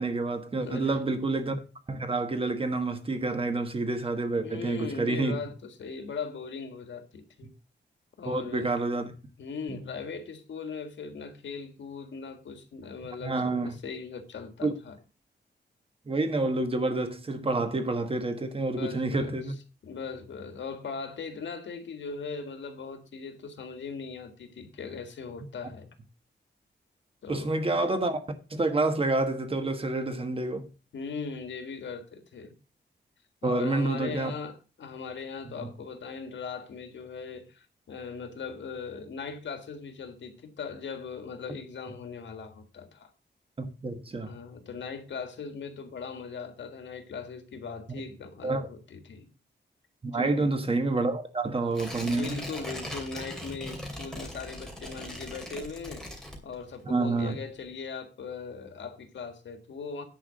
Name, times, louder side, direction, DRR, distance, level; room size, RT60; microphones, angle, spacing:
voice 1, 0.0-1.6 1.9-5.3 8.3-9.1 9.7-9.9 13.2-13.7 14.6-14.7 16.1-19.5 27.3-28.2 28.5-30.7 33.4-34.3 35.6-35.7 43.6-44.4 47.9-48.0 48.4-48.7 50.0-52.4 56.8-57.4, right 2 dB, 30° right, 1.3 m, -28 dB
voice 2, 0.6-1.1 4.4-7.5 8.2-8.7 9.4-15.0 18.8-19.5 19.8-25.9 27.2-27.6 30.9-32.5 33.4-43.1 44.3-49.3 50.1-50.6 52.0-60.0, left 5 dB, 85° left, 1.7 m, -39 dB
Tearing, 51.7-56.8 57.2-57.3, equal, 5° left, 2.8 m, -40 dB
10.0 x 4.7 x 6.3 m
wide cardioid pair, 150°, 19 cm